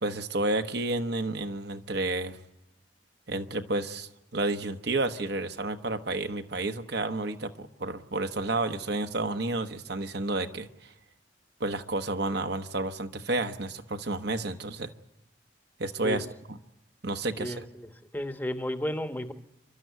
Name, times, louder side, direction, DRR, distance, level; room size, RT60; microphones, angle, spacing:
voice 1, 0.0-2.4 3.3-10.9 11.6-14.9 15.8-16.2 17.0-17.5, right 2 dB, 60° right, 7 dB, 1.3 m, -31 dB
voice 2, 17.4-19.3, left 1 dB, 10° left, 8 dB, 1.1 m, -33 dB
29.0 x 12.5 x 9.3 m, 0.94 s
head